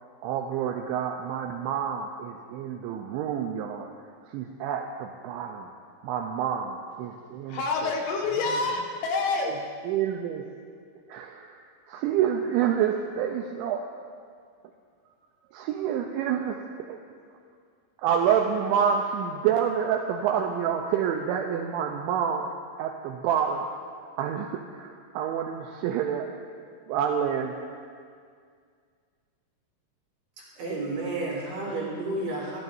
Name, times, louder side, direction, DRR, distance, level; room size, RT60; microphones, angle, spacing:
voice 1, 0.2-3.9 4.2-5.7 6.0-7.9 8.5-8.6 9.5-10.5 11.1-11.6 11.9-13.9 15.5-17.0 18.0-22.5 22.8-23.7 24.2-26.3 26.9-27.5, right 8 dB, 85° right, 3 dB, 2.7 m, -28 dB
voice 2, 7.5-9.5, left 3 dB, 75° left, 0 dB, 3.6 m, -27 dB
voice 3, 30.5-32.6, right 2 dB, 55° right, -6 dB, 6.0 m, -31 dB
27.5 x 12.5 x 2.7 m, 2.1 s
omnidirectional pair, 5.9 m